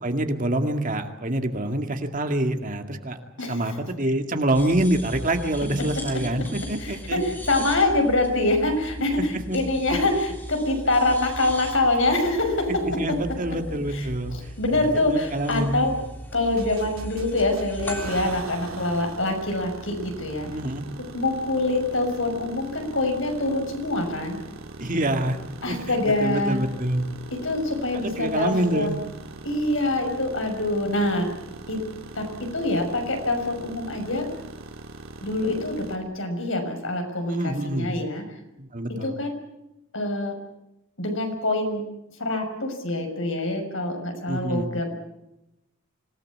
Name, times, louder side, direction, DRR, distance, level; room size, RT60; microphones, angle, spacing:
voice 1, 0.0-3.2 3.5-7.2 9.5-9.6 13.0-15.8 20.5-20.8 24.8-25.4 25.7-27.1 27.9-29.0 37.3-37.9 38.6-39.1 44.3-44.7, right 1 dB, 40° right, 6 dB, 2.1 m, -26 dB
sound 1, 4.5-18.4, equal, 10° left, 3.4 m, -38 dB
voice 2, 6.8-12.8 13.9-14.1 14.3-15.9 16.3-20.5 21.1-24.4 25.6-26.6 27.4-28.9 29.4-31.3 31.7-31.8 32.1-34.3 35.2-38.2 38.9-39.3 39.9-40.4 41.0-41.8 42.2-45.0, left 2 dB, 70° left, 4 dB, 6.2 m, -25 dB
sound 2, 16.6-36.0, right 2 dB, 80° right, 2.9 m, -41 dB
26.0 x 18.0 x 8.6 m, 0.90 s
head